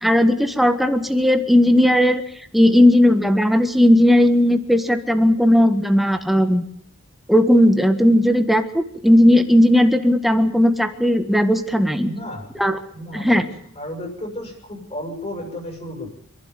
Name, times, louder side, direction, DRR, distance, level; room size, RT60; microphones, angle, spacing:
voice 1, 0.0-2.2 2.5-6.6 7.3-12.1 12.6-12.8 13.1-13.4, left 1 dB, ahead, 7 dB, 1.5 m, -16 dB
voice 2, 12.0-12.5 12.9-13.5 13.8-16.1, left 1 dB, 30° left, 1 dB, 7.1 m, -33 dB
26.5 x 11.5 x 9.7 m, 0.65 s
head